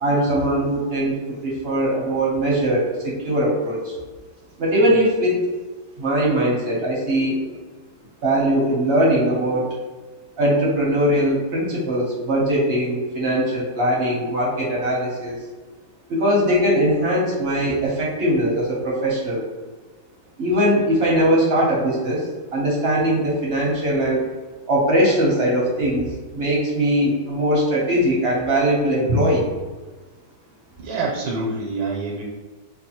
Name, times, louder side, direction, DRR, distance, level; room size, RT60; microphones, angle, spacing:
voice 1, 0.0-1.1 1.4-4.0 4.6-5.4 6.0-7.4 8.2-9.8 10.4-15.4 16.1-19.4 20.4-24.3 24.7-29.5, equal, 50° right, -4 dB, 0.8 m, -20 dB
voice 2, 30.8-32.2, right 3 dB, 80° right, -1 dB, 1.3 m, -26 dB
4.6 x 2.2 x 2.9 m, 1.3 s
omnidirectional pair, 1.9 m